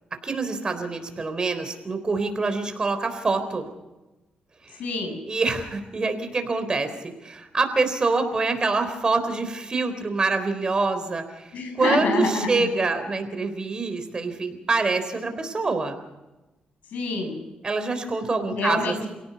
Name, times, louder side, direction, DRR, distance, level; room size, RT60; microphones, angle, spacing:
voice 1, 0.2-3.7 4.6-4.7 5.2-16.0 17.6-19.1, right 3 dB, 30° right, 8 dB, 3.7 m, -26 dB
voice 2, 4.8-5.2 11.5-12.7 16.9-17.4 18.5-19.1, left 3 dB, 80° left, 3 dB, 6.7 m, -26 dB
28.0 x 17.5 x 5.2 m, 1.0 s
cardioid pair, 95°, 3 cm